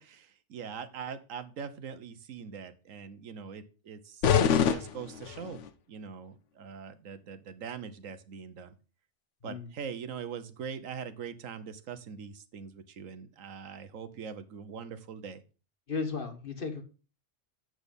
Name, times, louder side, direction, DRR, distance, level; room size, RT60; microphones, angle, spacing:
voice 1, 0.0-5.6 5.9-8.7 9.4-15.4, right 6 dB, 80° right, 11 dB, 1.3 m, -42 dB
sound 1, 4.2-5.7, left 8 dB, 70° left, 1.1 m, -26 dB
voice 2, 15.9-16.8, left 4 dB, 45° left, 5 dB, 1.6 m, -35 dB
7.9 x 6.3 x 5.2 m, 0.34 s
omnidirectional pair, 1.3 m